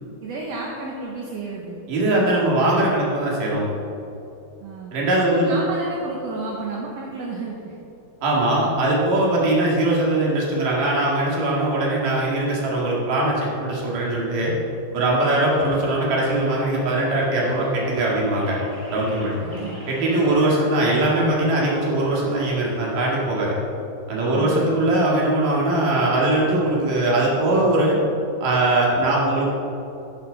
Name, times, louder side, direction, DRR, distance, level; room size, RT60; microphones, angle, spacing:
voice 1, 0.2-1.8 4.6-5.0 5.3-7.7 19.4-19.8 24.2-24.6, right 3 dB, 65° right, -2 dB, 1.8 m, -31 dB
voice 2, 1.9-3.7 4.9-5.6 8.2-14.5 14.9-18.6 18.9-19.4 19.9-23.5 24.1-28.0 28.4-29.5, right 1 dB, 85° right, -4 dB, 3.7 m, -21 dB
sound 1, 15.1-23.3, equal, 20° right, 2.3 m, -39 dB
11.0 x 10.5 x 4.0 m, 2.8 s
omnidirectional pair, 3.7 m